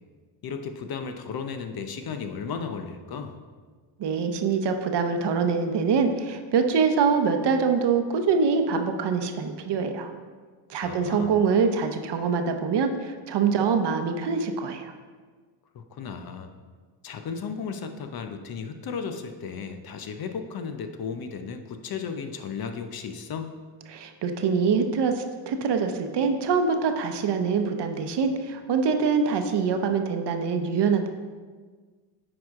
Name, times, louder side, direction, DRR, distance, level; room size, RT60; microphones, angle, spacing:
voice 1, 0.4-3.4 10.8-11.4 15.7-16.5 17.0-23.6, left 6 dB, 50° left, 7 dB, 0.7 m, -35 dB
voice 2, 4.0-10.1 10.7-14.9 23.9-31.1, right 5 dB, 60° right, 6 dB, 0.8 m, -24 dB
8.8 x 4.8 x 3.6 m, 1.5 s
cardioid pair, 95°, 47 cm